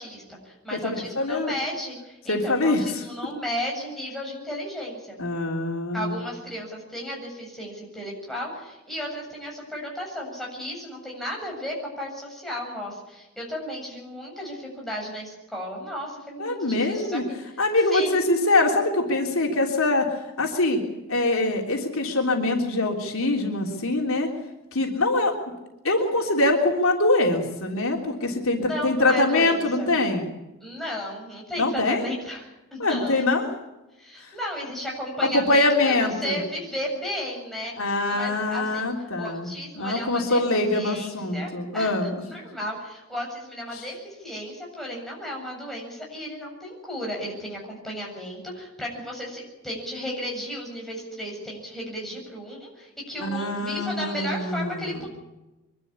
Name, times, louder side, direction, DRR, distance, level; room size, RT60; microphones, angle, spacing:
voice 1, 0.0-5.2 5.9-17.2 17.9-18.2 28.6-29.9 30.6-32.4 32.7-33.3 34.0-37.7 38.1-38.9 39.2-40.4 40.7-55.1, equal, ahead, -3 dB, 7.7 m, -34 dB
voice 2, 1.1-1.5 2.3-3.0 5.2-6.1 16.4-17.2 17.6-20.1 20.4-20.8 21.1-24.3 24.7-25.4 25.8-30.3 31.6-32.0 32.8-33.5 34.2-34.3 35.2-36.4 37.8-39.5 39.7-42.1 43.7-43.8 53.2-55.1, left 2 dB, 75° left, 1 dB, 3.4 m, -23 dB
24.5 x 12.5 x 9.9 m, 1.0 s
head